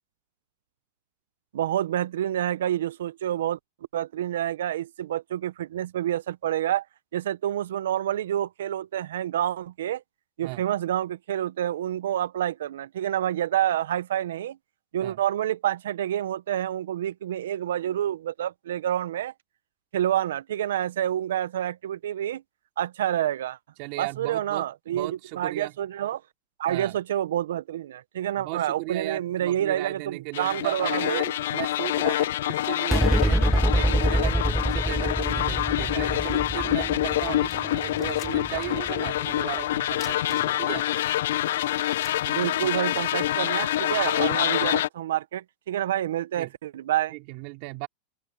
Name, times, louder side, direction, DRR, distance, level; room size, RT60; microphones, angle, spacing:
voice 1, 1.5-3.6 3.9-6.8 7.1-10.0 10.4-14.6 14.9-19.3 19.9-22.4 22.8-23.6 24.0-26.2 26.6-31.2 42.2-47.1, right 11 dB, 85° right, 0.6 m, -28 dB
voice 2, 23.8-24.7 24.9-25.7 26.7-27.0 28.4-40.9 46.3-46.5 47.1-47.9, right 26 dB, 50° right, 3.0 m, -36 dB
sound 1, 30.3-44.9, left 13 dB, 80° left, 0.3 m, -26 dB
sound 2, 32.9-39.6, right 1 dB, ahead, 0.6 m, -26 dB
sound 3, 37.5-38.8 39.1-39.2 39.9-40.8 41.2-41.3 41.6-43.1, left 11 dB, 30° left, 4.8 m, -47 dB
open air
supercardioid pair, 140°, 0 cm